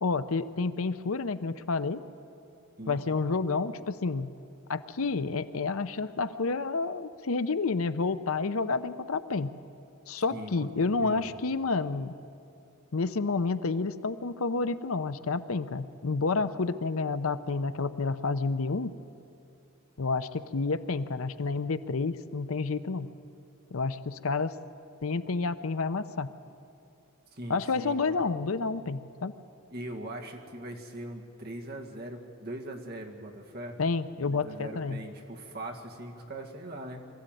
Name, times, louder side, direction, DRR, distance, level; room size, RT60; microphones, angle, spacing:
voice 1, 0.0-2.0 2.9-4.3 4.7-9.5 10.1-12.1 12.9-19.0 20.0-23.1 23.7-24.5 25.0-26.3 27.5-29.3 33.8-35.0, left 4 dB, 75° left, 13 dB, 0.7 m, -29 dB
voice 2, 10.3-11.3 27.3-28.2 29.7-33.8 34.2-37.0, right 1 dB, 45° right, 2 dB, 2.0 m, -41 dB
23.0 x 14.0 x 9.2 m, 2.6 s
head